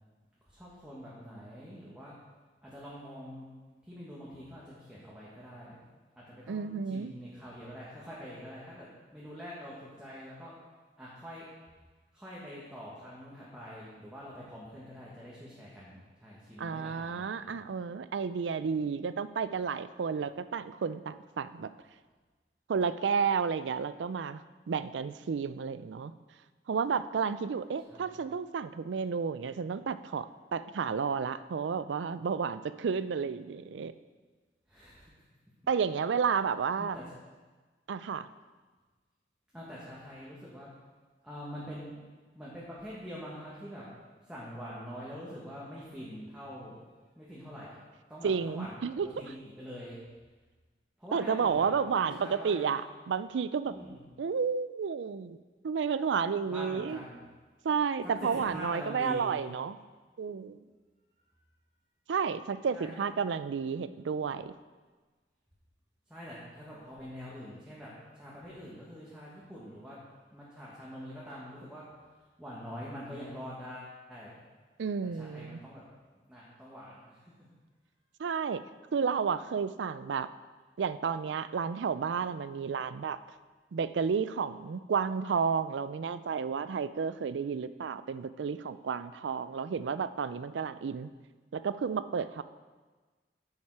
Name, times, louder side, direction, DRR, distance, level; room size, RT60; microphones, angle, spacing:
voice 1, 0.4-2.1 2.6-3.4 3.8-5.8 6.2-10.5 11.0-11.5 12.1-17.6 27.9-28.2 34.7-35.1 36.8-37.0 39.5-40.7 41.2-41.9 42.3-43.9 44.2-46.8 47.1-47.8 48.1-48.7 49.2-50.0 51.0-52.8 53.7-54.1 56.5-57.2 58.0-59.4 62.7-63.0 66.1-70.0 70.3-71.8 72.4-74.4 75.0-75.8 76.3-77.3, equal, 5° right, -8 dB, 1.5 m, -45 dB
voice 2, 6.5-7.1 16.6-21.7 22.7-24.4 24.7-26.1 26.7-33.9 35.7-37.0 37.9-38.3 48.2-49.1 51.1-53.7 54.2-55.4 55.6-57.0 57.6-59.8 60.2-60.6 62.1-64.6 74.8-75.6 78.2-78.6 78.9-80.3 80.8-83.2 83.7-91.1 91.5-92.4, right 6 dB, 90° right, 14 dB, 0.4 m, -31 dB
9.6 x 7.2 x 4.7 m, 1.3 s
head